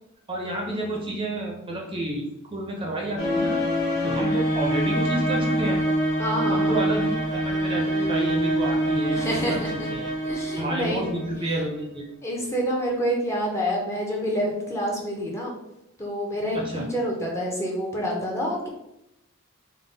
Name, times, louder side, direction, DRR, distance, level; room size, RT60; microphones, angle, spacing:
voice 1, 0.3-3.6 4.0-5.8 6.5-9.6 9.9-10.1 10.6-12.1 16.5-16.9, right 1 dB, 25° right, -1 dB, 0.6 m, -30 dB
sound 1, 3.2-11.5, right 1 dB, 60° left, 1.1 m, -25 dB
voice 2, 6.2-6.8 9.1-9.9 10.2-11.1 12.2-15.5 16.0-18.7, equal, 15° left, -2 dB, 0.7 m, -27 dB
3.7 x 2.2 x 3.9 m, 0.86 s
head